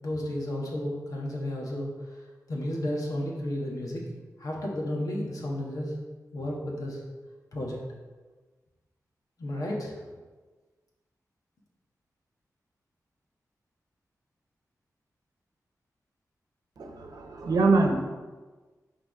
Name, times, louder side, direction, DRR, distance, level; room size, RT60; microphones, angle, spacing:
voice 1, 0.0-4.1 4.4-5.9 6.3-7.0 7.5-7.8 9.4-10.0, left 1 dB, 65° left, -2 dB, 1.4 m, -33 dB
voice 2, 16.8-18.0, right 3 dB, 80° right, 3 dB, 0.9 m, -24 dB
5.9 x 3.5 x 5.8 m, 1.3 s
wide cardioid pair, 105°, 6 cm